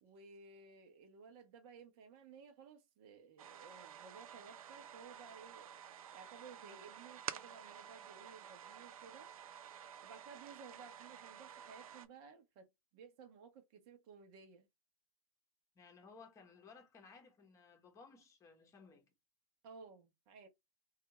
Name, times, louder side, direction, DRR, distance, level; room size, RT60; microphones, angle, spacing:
voice 1, 0.0-5.7 6.1-9.3 10.0-14.7 19.6-20.5, right 5 dB, 40° right, 0.9 m, -57 dB
sound 1, 3.4-12.1, right 9 dB, 70° right, 0.5 m, -51 dB
voice 2, 15.7-19.1, left 4 dB, 15° left, 1.0 m, -59 dB
3.4 x 2.4 x 2.9 m
hypercardioid pair, 125°, 19 cm